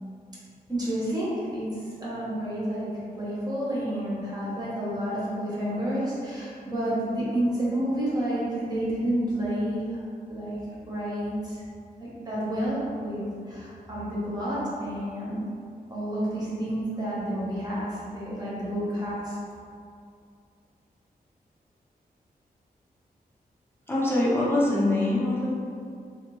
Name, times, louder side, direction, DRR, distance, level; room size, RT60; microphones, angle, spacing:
voice 1, 0.7-2.9 3.2-10.0 10.3-11.6 12.0-15.5 15.9-19.4, right 1 dB, 25° right, -8 dB, 0.9 m, -30 dB
voice 2, 23.9-25.5, left 1 dB, 15° left, -7 dB, 0.6 m, -23 dB
3.2 x 2.5 x 3.0 m, 2.3 s
wide cardioid pair, 155°, 16 cm